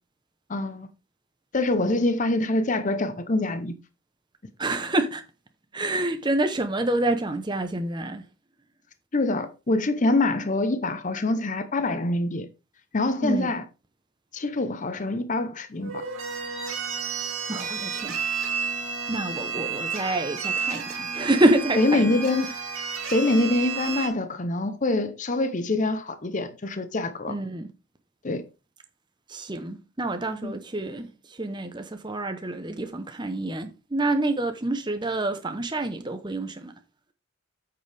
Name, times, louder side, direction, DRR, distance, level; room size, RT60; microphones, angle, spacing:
voice 1, 0.5-0.9 1.5-3.8 9.1-12.5 12.9-13.6 14.3-16.0 21.8-22.5 23.1-27.4 28.2-28.5 30.4-30.5, left 2 dB, 35° left, 0.7 m, -25 dB
voice 2, 4.6-5.2 5.7-8.2 13.2-13.5 17.5-18.2 19.1-22.1 27.3-27.7 29.3-36.7, right 2 dB, 20° right, 0.8 m, -27 dB
sound 1, 15.8-24.1, right 6 dB, 60° right, 2.8 m, -31 dB
8.4 x 6.8 x 3.4 m
head